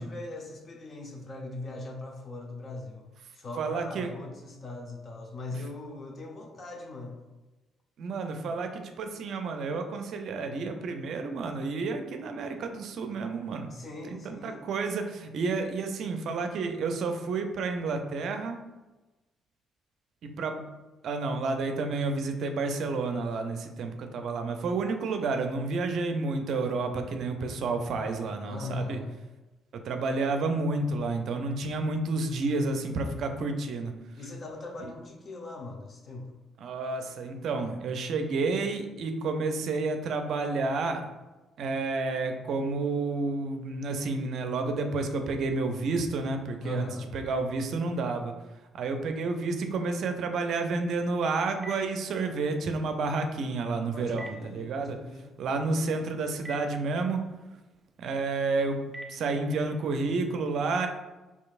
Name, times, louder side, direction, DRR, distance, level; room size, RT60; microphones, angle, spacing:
voice 1, 0.0-3.1 3.3-7.2 13.7-14.6 28.4-29.2 34.2-36.3 46.6-47.1 53.9-55.3, left 2 dB, 45° left, 1 dB, 0.8 m, -40 dB
voice 2, 3.6-4.1 8.0-13.7 14.1-18.6 20.2-20.6 21.0-29.0 29.8-33.9 34.8-34.9 36.6-41.0 41.6-48.3 48.7-55.0 55.4-57.2 58.0-58.8 59.1-60.9, right 3 dB, 65° right, 6 dB, 0.4 m, -30 dB
Telephone, 50.9-59.8, right 1 dB, 30° right, 0.8 m, -50 dB
4.4 x 2.8 x 2.4 m, 1.1 s
hypercardioid pair, 50°, 0 cm